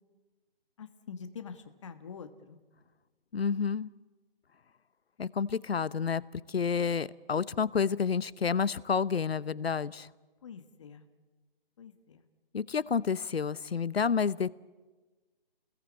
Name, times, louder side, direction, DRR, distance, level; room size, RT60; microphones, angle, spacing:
voice 1, 0.8-2.6 10.4-11.0 11.8-12.2, left 6 dB, 30° left, 9 dB, 1.4 m, -45 dB
voice 2, 3.3-3.9 5.2-10.1 12.5-14.5, left 6 dB, 80° left, 19 dB, 0.9 m, -29 dB
30.0 x 20.5 x 8.6 m, 1.3 s
hypercardioid pair, 165°, 30 cm